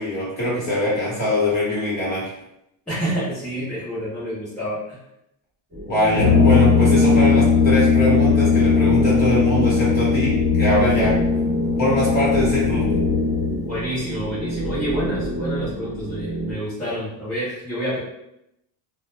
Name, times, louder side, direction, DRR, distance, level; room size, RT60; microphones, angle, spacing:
voice 1, 0.0-2.2 5.9-11.1 11.8-12.8, left 1 dB, 20° left, -8 dB, 0.9 m, -22 dB
voice 2, 2.9-5.0 13.6-18.0, equal, 5° left, -17 dB, 0.3 m, -28 dB
sound 1, 5.7-16.5, right 2 dB, 15° right, 0.8 m, -28 dB
Brass instrument, 6.1-13.6, left 5 dB, 65° left, 0.7 m, -18 dB
2.1 x 2.0 x 2.9 m, 0.82 s
cardioid pair, 175°, 49 cm